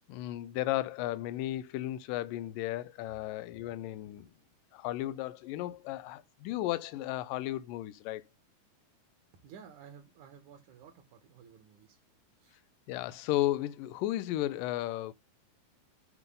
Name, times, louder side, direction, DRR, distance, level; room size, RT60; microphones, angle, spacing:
voice 1, 0.1-4.3 4.7-8.2 12.9-15.1, left 15 dB, 80° left, 2.2 m, -34 dB
voice 2, 9.3-12.0 12.4-12.6, right 7 dB, 65° right, 2.6 m, -54 dB
12.0 x 5.3 x 3.7 m
omnidirectional pair, 4.1 m